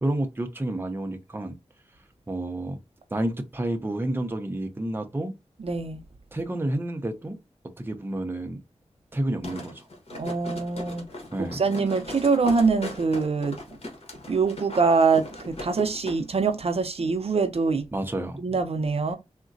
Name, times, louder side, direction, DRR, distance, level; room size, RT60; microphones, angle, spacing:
voice 1, 0.0-1.5 2.3-2.8 3.1-5.3 6.3-7.4 7.8-8.6 9.1-9.8 11.3-11.6 17.9-18.4, right 1 dB, 20° right, 0.6 m, -29 dB
voice 2, 5.6-6.0 10.1-11.0 11.4-13.6 14.3-17.9 18.4-19.2, right 4 dB, 60° right, 0.5 m, -24 dB
sound 1, 9.4-16.2 16.5-16.6, left 2 dB, 60° left, 1.1 m, -39 dB
3.7 x 2.1 x 2.5 m
wide cardioid pair, 65°, 11 cm